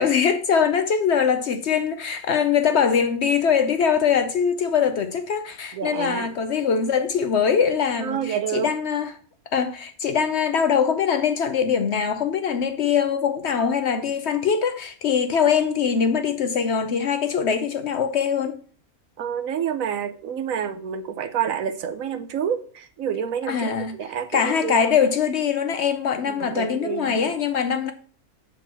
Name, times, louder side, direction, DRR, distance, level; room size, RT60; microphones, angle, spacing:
voice 1, 0.0-9.1 9.5-18.6 23.5-24.0 24.3-27.9, left 7 dB, 60° left, 0.8 m, -22 dB
voice 2, 5.7-6.3 8.0-8.7 19.2-24.9 26.3-27.3, right 8 dB, 70° right, 1.1 m, -28 dB
7.4 x 4.5 x 5.8 m
omnidirectional pair, 1.5 m